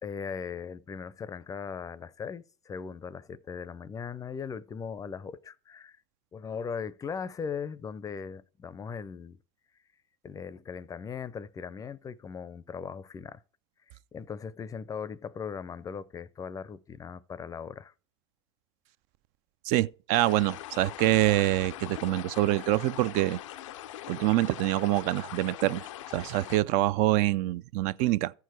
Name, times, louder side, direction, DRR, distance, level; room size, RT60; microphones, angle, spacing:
voice 1, 0.0-6.0 6.3-9.4 10.2-13.4 14.1-17.9, left 6 dB, 20° left, 0.5 m, -39 dB
voice 2, 19.7-23.4 24.1-25.9 26.1-28.3, right 15 dB, 55° right, 0.4 m, -25 dB
sound 1, 20.1-26.6, left 13 dB, 90° left, 0.5 m, -42 dB
14.0 x 4.7 x 4.6 m
supercardioid pair, 110°, 16 cm